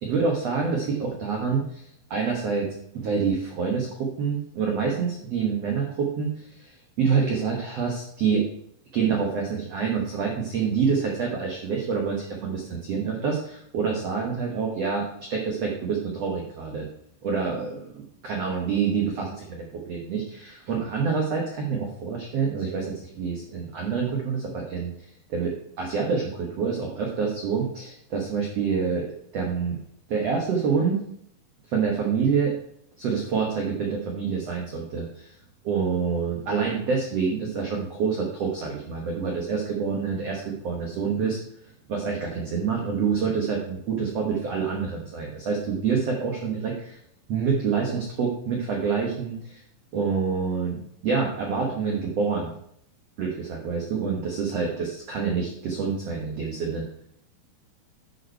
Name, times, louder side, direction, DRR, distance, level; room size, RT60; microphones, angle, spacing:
voice 1, 0.0-2.7 2.9-8.4 8.9-15.0 15.3-16.9 17.2-29.8 30.1-31.0 31.7-32.5 33.0-35.3 35.6-41.4 41.9-47.0 47.3-49.6 49.9-52.5 53.2-56.8, right 5 dB, 75° right, 0 dB, 1.4 m, -27 dB
10.5 x 5.3 x 4.5 m, 0.70 s
omnidirectional pair, 4.8 m